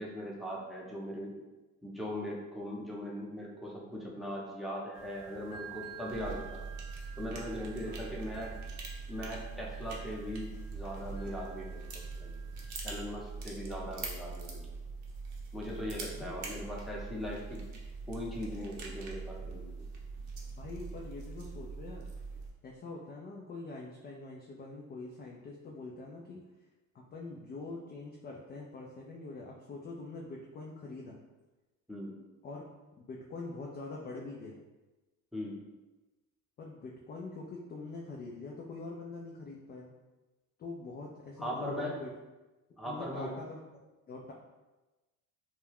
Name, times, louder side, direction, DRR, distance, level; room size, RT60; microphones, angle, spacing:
voice 1, 0.0-1.3 1.8-6.6 7.2-8.5 9.1-12.3 12.8-14.7 15.5-17.6 18.1-19.7 31.9-32.2 35.3-35.6 41.4-42.0 42.8-43.3, equal, ahead, -4 dB, 0.7 m, -39 dB
sound 1, 4.9-13.2, right 6 dB, 85° left, 0.9 m, -52 dB
sound 2, 6.1-22.5, right 4 dB, 45° right, 0.7 m, -42 dB
voice 2, 20.5-22.1 22.6-26.4 26.9-31.2 32.4-32.7 33.0-34.6 36.6-39.9 40.6-42.1 42.8-43.6 44.1-44.3, left 3 dB, 25° left, -2 dB, 0.3 m, -44 dB
2.3 x 2.2 x 3.3 m, 1.1 s
hypercardioid pair, 75°, 40 cm